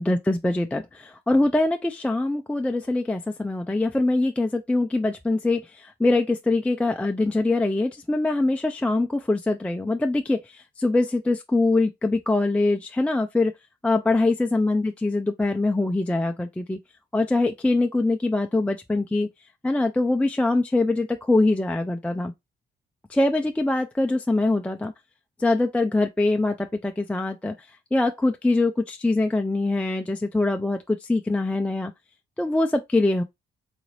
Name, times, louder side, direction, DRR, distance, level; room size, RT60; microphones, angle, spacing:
voice 1, 0.0-13.5 13.8-16.8 17.1-19.3 19.6-22.3 23.1-24.9 25.4-27.5 27.9-31.9 32.4-33.2, left 2 dB, 5° left, 0.4 m, -23 dB
4.0 x 2.5 x 3.1 m
cardioid pair, 90°, 20 cm